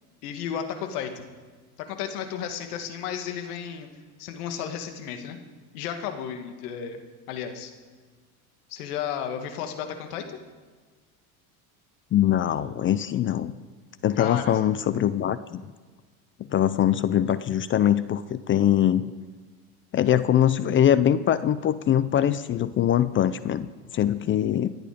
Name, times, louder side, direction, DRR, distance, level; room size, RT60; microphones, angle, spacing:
voice 1, 0.2-1.3 1.8-3.9 4.2-5.4 5.7-7.0 7.3-7.7 8.7-10.2 14.2-14.6, left 8 dB, 80° left, 6 dB, 2.2 m, -33 dB
voice 2, 12.1-13.5 14.0-15.6 16.5-19.1 19.9-24.7, left 10 dB, 30° left, 15 dB, 0.4 m, -22 dB
25.5 x 9.0 x 5.1 m, 1.4 s
supercardioid pair, 105°, 45 cm